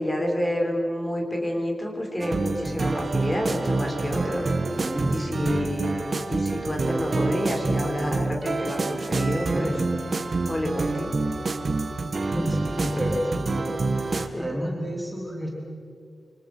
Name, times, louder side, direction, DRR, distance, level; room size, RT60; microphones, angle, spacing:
voice 1, 0.0-4.5 5.1-5.9 6.3-9.7 10.5-11.1 14.3-14.4, equal, 15° left, 1 dB, 4.2 m, -28 dB
sound 1, 2.2-14.3, right 3 dB, 40° right, 1.5 m, -27 dB
voice 2, 4.7-5.5 9.4-9.8 12.1-15.5, equal, 5° right, -2 dB, 3.4 m, -31 dB
28.0 x 25.5 x 6.3 m, 2.5 s
wide cardioid pair, 170°, 0 cm